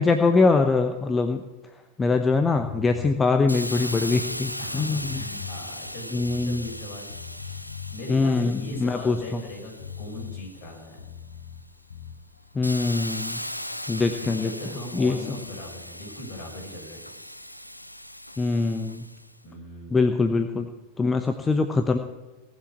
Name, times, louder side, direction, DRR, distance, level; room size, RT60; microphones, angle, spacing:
voice 1, 0.0-1.4 2.0-5.2 6.1-6.7 8.1-9.4 12.5-13.4 13.9-14.5 14.9-15.2 18.4-19.1 19.9-20.7 21.0-22.0, left 3 dB, 15° left, 6 dB, 0.9 m, -23 dB
sound 1, 2.6-3.2 3.7-6.8 7.1-8.0 8.5-11.6 11.9-12.2, left 8 dB, 70° left, 1.4 m, -41 dB
Hiss, 3.5-11.1 11.6-19.3, left 1 dB, 90° left, 0.6 m, -38 dB
voice 2, 4.6-7.1 7.4-7.6 7.9-11.0 14.2-17.0 19.4-20.0, left 1 dB, 45° left, 0 dB, 6.5 m, -39 dB
19.0 x 7.5 x 8.2 m, 1.2 s
figure-of-eight pair, 90°, 0 cm